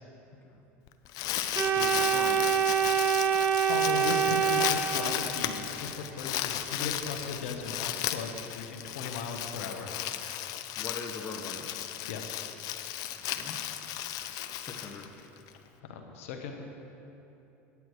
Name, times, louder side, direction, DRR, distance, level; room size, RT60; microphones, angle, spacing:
Crumpling crinkling, 0.9-15.5, left 12 dB, 55° left, 0.5 m, -35 dB
voice 1, 1.5-2.6 10.8-11.8 13.4-13.6 14.6-15.1, left 4 dB, 30° left, 3 dB, 1.0 m, -41 dB
Organ, 1.5-5.5, right 7 dB, 40° right, 0.7 m, -26 dB
voice 2, 3.7-9.9 12.1-12.5 15.8-16.6, left 5 dB, 80° left, 3 dB, 0.9 m, -37 dB
9.3 x 8.2 x 4.7 m, 3.0 s
hypercardioid pair, 90°, 7 cm